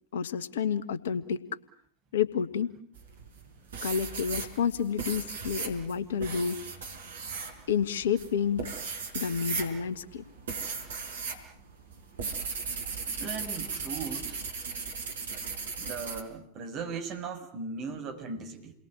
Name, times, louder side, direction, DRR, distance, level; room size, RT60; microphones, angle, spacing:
voice 1, 0.1-1.4 2.1-2.7 3.8-6.6 7.7-8.7 9.1-10.2, left 7 dB, 60° left, 14 dB, 1.6 m, -29 dB
sound 1, 3.0-3.4 3.7-11.4 11.7-16.2, right 5 dB, 65° right, 5.0 m, -36 dB
voice 2, 13.2-14.4 15.8-18.7, right 4 dB, 35° right, 5 dB, 6.6 m, -38 dB
29.5 x 22.5 x 8.7 m, 0.63 s
figure-of-eight pair, 90°, 0 cm